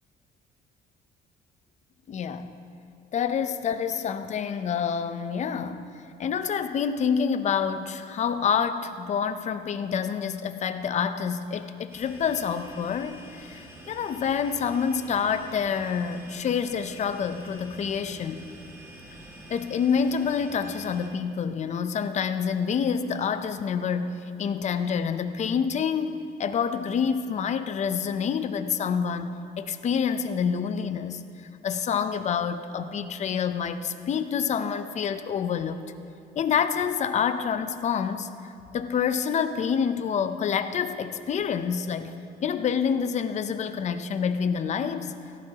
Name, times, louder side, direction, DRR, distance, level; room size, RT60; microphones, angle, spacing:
voice 1, 2.1-2.5 3.1-5.9 6.2-18.5 19.5-29.3 29.6-31.2 31.6-35.8 36.4-38.3 38.7-42.1 42.4-45.1, left 7 dB, 45° left, 10 dB, 0.7 m, -27 dB
sound 1, 11.9-21.1, right 1 dB, 15° right, 2.0 m, -47 dB
17.0 x 15.0 x 3.0 m, 2.5 s
cardioid pair, 110°, 17 cm